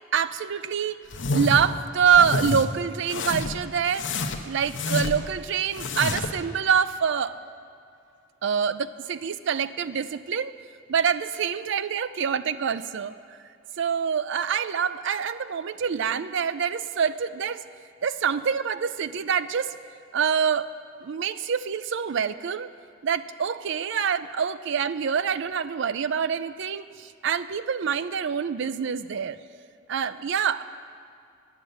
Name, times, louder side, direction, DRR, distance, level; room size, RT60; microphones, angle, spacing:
voice 1, 0.1-1.1 1.3-4.1 4.4-7.4 8.4-10.5 10.9-13.1 13.8-17.6 18.0-19.7 20.1-20.7 21.0-22.7 23.0-29.4 29.9-30.6, right 7 dB, 60° right, 14 dB, 0.4 m, -26 dB
sound 1, 1.1-1.7 2.1-2.6 3.1-3.6 3.9-5.3 5.7-6.4, left 3 dB, 65° left, 0.8 m, -28 dB
10.0 x 6.8 x 9.1 m, 2.5 s
head